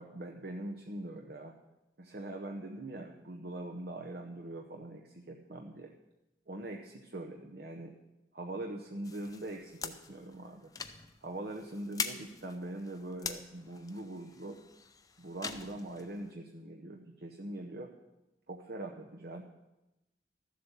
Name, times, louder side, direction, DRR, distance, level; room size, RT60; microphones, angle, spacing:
voice 1, 0.0-1.5 2.0-5.9 6.5-7.9 8.3-10.7 11.2-14.6 15.2-17.9 18.5-19.4, right 1 dB, 60° right, 2 dB, 0.8 m, -42 dB
sound 1, 9.0-16.3, left 5 dB, 20° left, 0.6 m, -44 dB
13.5 x 7.6 x 6.8 m, 0.97 s
head